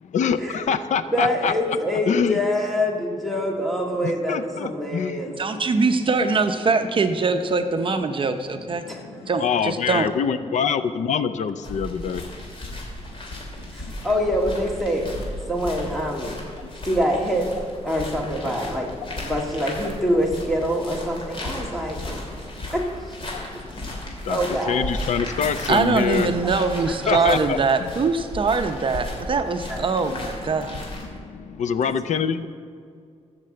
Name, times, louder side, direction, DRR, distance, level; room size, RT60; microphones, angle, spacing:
voice 1, 0.1-1.5 2.1-2.4 4.0-5.6 8.1-8.2 8.8-12.7 13.0-13.2 13.6-13.9 16.6-16.8 21.6-21.7 22.4-22.7 23.3-24.4 24.7-26.3 27.1-27.9 30.0-30.1 30.5-32.5, left 7 dB, 85° left, 12 dB, 0.6 m, -26 dB
voice 2, 1.1-5.4 8.9-9.0 13.7-15.2 15.5-16.4 16.8-17.5 17.8-18.9 19.2-22.2 22.7-23.2 24.3-24.9 26.9-27.4 29.7-29.9 31.8-31.9, equal, ahead, -1 dB, 1.8 m, -25 dB
voice 3, 5.4-8.8 9.3-10.1 25.7-30.7, right 4 dB, 45° right, 7 dB, 0.7 m, -22 dB
sound 1, 11.6-31.0, left 1 dB, 45° left, 3.0 m, -35 dB
13.5 x 6.8 x 7.7 m, 2.2 s
wide cardioid pair, 130°, 12 cm